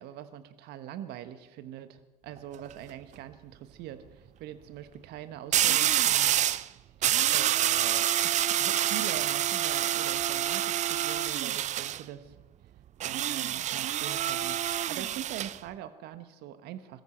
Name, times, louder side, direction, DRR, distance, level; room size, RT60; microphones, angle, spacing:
voice 1, 0.0-6.6 7.3-12.3 13.0-17.0, right 11 dB, 55° right, 11 dB, 1.3 m, -43 dB
sound 1, 2.4-2.7 5.5-6.7 7.0-12.0 13.0-15.6, right 11 dB, 35° right, 0.5 m, -27 dB
22.0 x 14.0 x 4.5 m, 1.1 s
hypercardioid pair, 75°, 20 cm